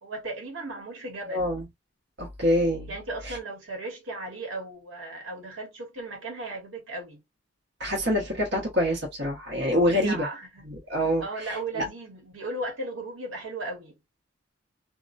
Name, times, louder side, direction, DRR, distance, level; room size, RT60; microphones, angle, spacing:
voice 1, 0.0-1.5 2.9-7.2 9.7-10.7 11.2-14.0, right 2 dB, 80° right, 1.2 m, -36 dB
voice 2, 1.3-1.6 2.2-2.9 3.2-3.4 7.8-10.3 10.7-11.9, equal, 60° right, 1.1 m, -26 dB
2.8 x 2.1 x 2.5 m
head